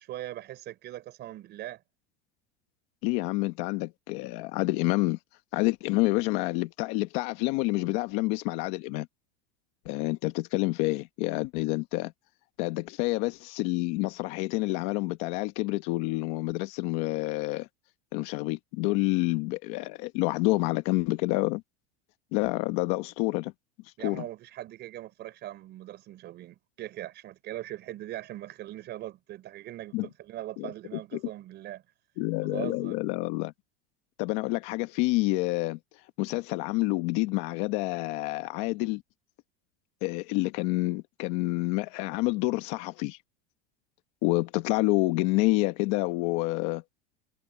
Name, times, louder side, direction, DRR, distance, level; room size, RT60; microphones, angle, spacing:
voice 1, 0.0-1.8 24.0-31.8 32.4-33.0, right 14 dB, 30° right, 5.5 m, -40 dB
voice 2, 3.0-5.2 5.5-9.1 9.8-12.1 12.6-17.7 18.1-21.6 22.3-23.5 24.0-24.2 29.9-30.1 30.6-31.2 32.2-33.5 34.2-35.8 36.2-39.0 40.0-43.2 44.2-46.8, left 20 dB, 45° left, 1.1 m, -28 dB
supercardioid pair, 175°, 32 cm